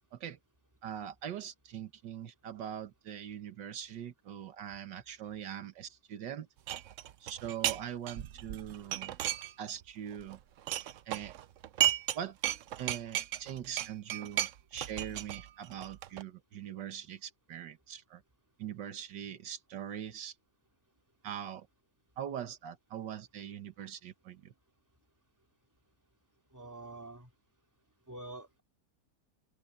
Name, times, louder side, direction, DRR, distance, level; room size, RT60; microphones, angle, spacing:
voice 1, 0.8-6.5 7.2-9.2 9.6-10.4 11.1-11.3 12.1-12.4 12.8-18.2 18.6-20.3 21.2-21.7 22.2-24.5, right 9 dB, 85° right, 1.8 m, -42 dB
sound 1, 6.7-7.8 8.1-9.8 10.1-12.2 12.4-16.2, right 11 dB, 65° right, 0.8 m, -34 dB
voice 2, 26.5-27.3 28.1-28.6, right 2 dB, 10° right, 3.1 m, -46 dB
open air
omnidirectional pair, 1.9 m